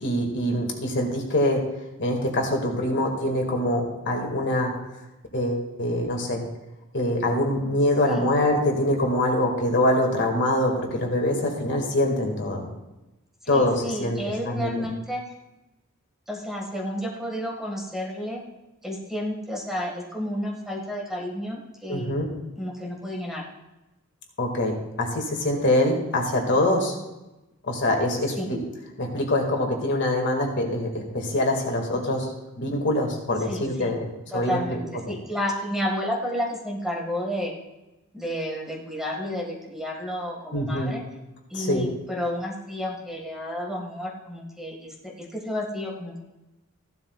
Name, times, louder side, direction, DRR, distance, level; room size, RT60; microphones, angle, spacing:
voice 1, 0.0-1.7 2.0-4.7 5.3-6.4 6.9-12.7 13.5-14.2 14.5-14.9 21.9-22.3 24.4-26.9 27.6-28.6 29.0-32.3 32.6-34.8 35.1-35.2 40.5-40.9 41.5-41.9, left 1 dB, 55° left, 1 dB, 2.1 m, -24 dB
voice 2, 13.4-15.2 16.3-18.4 18.8-22.1 22.6-23.4 28.4-28.5 33.5-34.0 34.3-37.5 38.1-41.0 41.5-46.2, equal, ahead, -2 dB, 1.8 m, -31 dB
15.0 x 12.0 x 2.4 m, 1.0 s
head